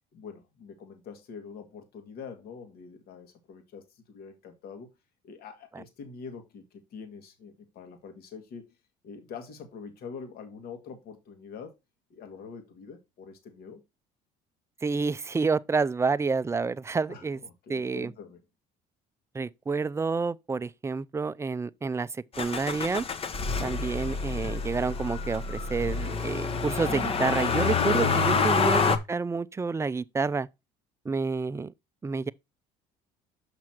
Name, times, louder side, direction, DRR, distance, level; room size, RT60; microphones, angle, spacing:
voice 1, 0.1-4.9 5.2-8.7 9.0-11.8 12.1-13.8 17.1-18.4, left 5 dB, 65° left, 2.0 m, -45 dB
voice 2, 14.8-17.4 17.7-18.1 19.3-23.1 23.6-28.8 29.1-30.5 31.0-31.7 32.0-32.3, right 4 dB, 15° right, 0.4 m, -29 dB
Motor vehicle (road), 22.4-29.0, left 5 dB, 35° left, 1.0 m, -27 dB
6.2 x 5.9 x 4.3 m
supercardioid pair, 90°, 17 cm